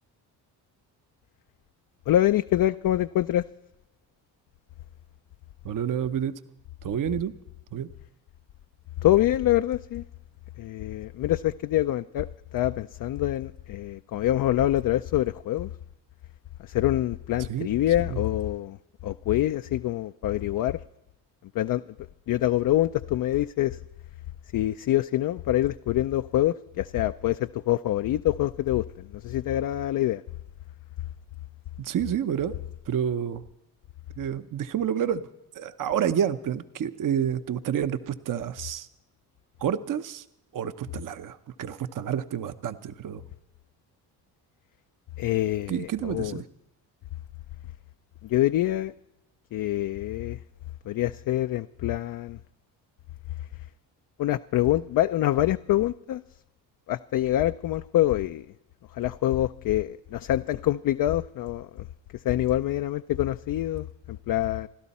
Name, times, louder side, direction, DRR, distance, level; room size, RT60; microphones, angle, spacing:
voice 1, 2.1-3.4 9.0-10.0 10.6-15.7 16.6-18.8 19.0-20.8 21.5-21.8 22.3-23.8 24.5-30.2 45.2-46.4 48.2-48.9 49.5-50.4 50.9-52.4 54.2-56.2 56.9-58.5 58.9-61.9 62.2-64.7, left 13 dB, 55° left, 9 dB, 0.5 m, -25 dB
voice 2, 5.6-6.3 6.8-7.3 7.7-7.9 17.5-17.7 18.0-18.2 31.8-32.5 32.9-33.4 34.2-35.2 35.5-38.9 39.6-40.2 40.5-43.2 45.7-46.4, right 9 dB, 50° right, 10 dB, 0.8 m, -29 dB
28.0 x 12.0 x 4.2 m, 0.89 s
cardioid pair, 90°, 40 cm